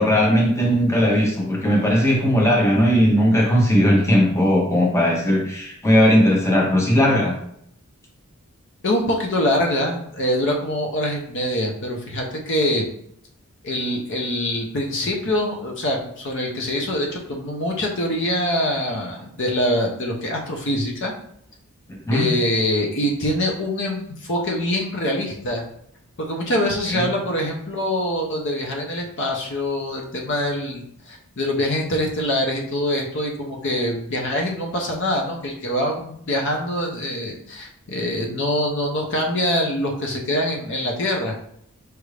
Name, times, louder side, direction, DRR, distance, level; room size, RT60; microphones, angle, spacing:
voice 1, 0.0-7.3 21.9-22.3 26.9-27.1, equal, 15° left, -1 dB, 0.7 m, -18 dB
voice 2, 8.8-12.9 13.6-21.1 22.1-25.6 26.2-41.3, left 1 dB, 55° left, 1 dB, 0.7 m, -24 dB
4.5 x 2.5 x 3.2 m, 0.70 s
head